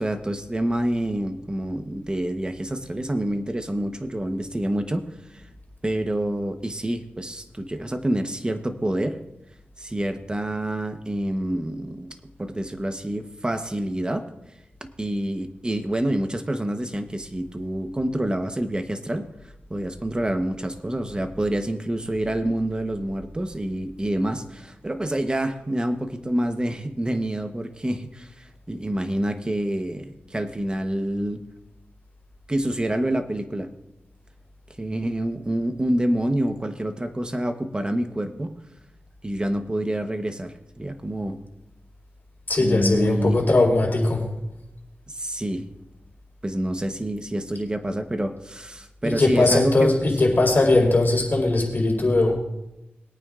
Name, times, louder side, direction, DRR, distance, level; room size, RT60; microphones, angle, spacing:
voice 1, 0.0-5.0 5.3-5.4 5.8-9.2 9.8-14.3 15.0-19.3 19.7-31.4 32.5-33.7 34.8-38.5 39.2-41.4 42.6-43.4 45.1-45.7 46.4-50.1, right 1 dB, 20° right, 8 dB, 1.0 m, -27 dB
voice 2, 42.5-44.3 49.0-52.3, left 2 dB, 50° left, -1 dB, 4.2 m, -20 dB
22.0 x 9.1 x 2.5 m, 0.92 s
wide cardioid pair, 70°, 4 cm